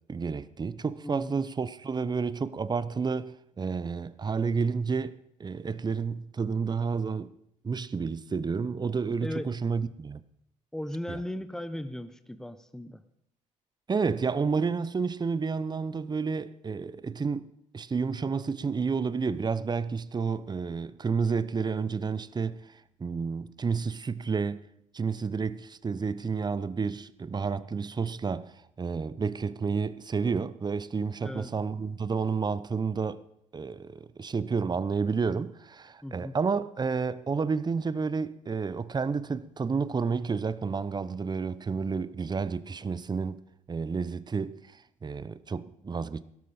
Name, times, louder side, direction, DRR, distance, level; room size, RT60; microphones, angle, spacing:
voice 1, 0.1-7.3 7.6-10.2 11.1-11.2 13.9-17.4 17.7-22.7 23.0-24.6 24.9-28.5 28.8-33.2 33.5-43.4 43.7-44.6 45.0-46.2, right 5 dB, 25° right, 0.7 m, -30 dB
voice 2, 1.0-1.4 9.2-9.5 10.7-13.0 31.2-31.5 36.0-36.4, left 1 dB, 5° left, 0.9 m, -37 dB
17.0 x 13.0 x 4.3 m
hypercardioid pair, 50°, 16 cm